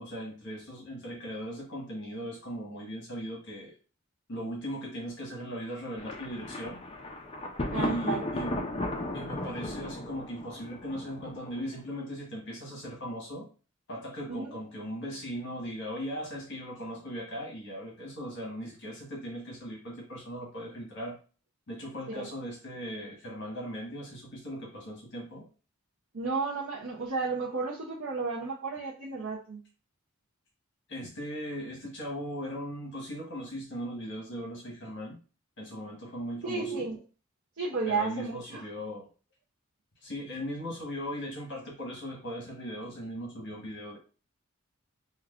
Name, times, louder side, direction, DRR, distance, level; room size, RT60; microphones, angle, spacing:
voice 1, 0.0-3.7 4.3-6.8 7.7-8.6 9.1-13.5 13.9-21.2 21.7-25.5 30.9-35.2 35.6-36.9 37.9-39.1 40.0-44.0, equal, 60° left, -2 dB, 1.2 m, -38 dB
Thunder, 6.0-11.8, left 1 dB, 30° left, 0.5 m, -35 dB
voice 2, 7.7-8.5 14.3-14.6 22.1-22.3 26.1-29.6 36.4-37.0 37.6-38.6, right 4 dB, 80° right, -4 dB, 0.7 m, -33 dB
5.7 x 2.2 x 2.4 m, 0.37 s
head